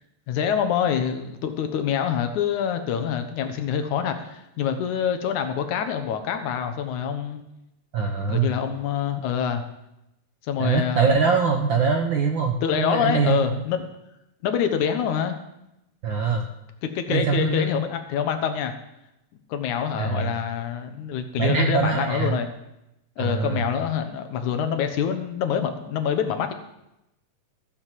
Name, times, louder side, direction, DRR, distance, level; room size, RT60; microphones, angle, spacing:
voice 1, 0.3-7.4 8.3-9.6 10.5-11.2 12.6-13.9 14.4-15.4 16.8-18.7 19.5-22.5 23.2-26.5, left 8 dB, 90° left, 8 dB, 2.6 m, -26 dB
voice 2, 7.9-8.6 10.6-13.4 16.0-16.4 17.1-17.8 20.0-20.3 21.4-22.3 23.2-23.7, right 5 dB, 65° right, 3 dB, 1.2 m, -23 dB
14.5 x 6.5 x 7.5 m, 0.88 s
omnidirectional pair, 3.3 m